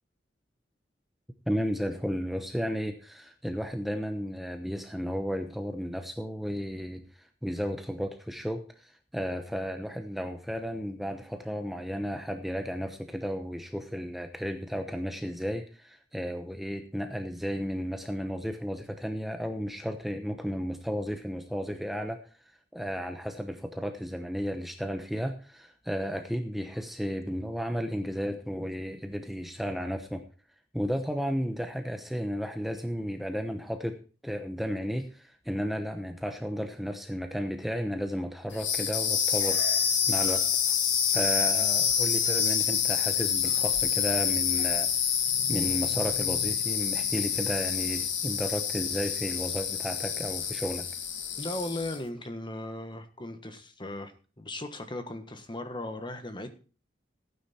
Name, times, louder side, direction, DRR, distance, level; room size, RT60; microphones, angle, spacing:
voice 1, 1.5-22.2 22.7-30.2 30.7-34.0 34.2-39.6 40.1-40.7 41.1-44.9 45.5-50.9, equal, ahead, 6 dB, 0.9 m, -33 dB
sound 1, 38.5-52.0, left 8 dB, 85° left, 1.7 m, -27 dB
voice 2, 51.4-54.1 54.4-56.5, left 1 dB, 25° left, 8 dB, 1.4 m, -37 dB
15.0 x 9.3 x 4.3 m, 0.37 s
head